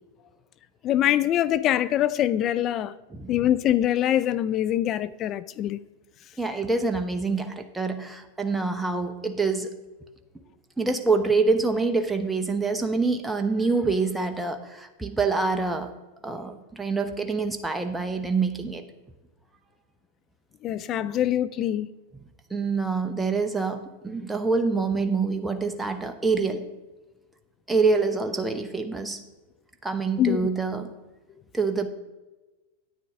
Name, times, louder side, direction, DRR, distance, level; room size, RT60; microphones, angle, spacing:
voice 1, 0.8-2.9 3.3-5.8 16.3-16.4 20.6-21.9 30.2-30.5, left 12 dB, 40° left, 0.4 m, -24 dB
voice 2, 6.4-9.7 10.8-15.9 16.2-18.8 22.5-26.6 27.7-29.2 29.8-30.9 31.5-31.9, right 4 dB, 10° right, 0.8 m, -26 dB
10.0 x 9.1 x 3.5 m
hypercardioid pair, 100°, 0 cm